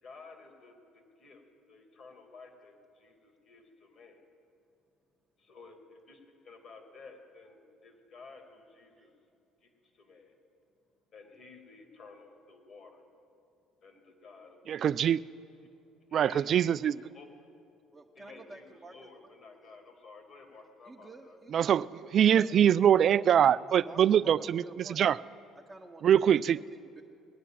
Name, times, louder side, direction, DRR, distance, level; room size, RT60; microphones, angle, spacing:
voice 1, 0.0-1.4 1.7-4.2 5.4-9.1 9.6-10.4 11.1-13.1 13.8-15.0 15.6-17.7 18.1-21.4, left 3 dB, 50° left, 4 dB, 2.5 m, -53 dB
voice 2, 14.7-15.2 16.1-16.9 21.5-21.9 22.1-24.6 24.9-25.2 26.0-26.6, right 9 dB, 50° right, 17 dB, 0.3 m, -23 dB
voice 3, 17.9-19.3 20.8-21.9 22.3-22.5 23.8-25.0 25.7-26.2 26.5-27.0, right 2 dB, 20° right, -2 dB, 1.1 m, -50 dB
19.5 x 9.5 x 7.5 m, 2.5 s
supercardioid pair, 90°, 0 cm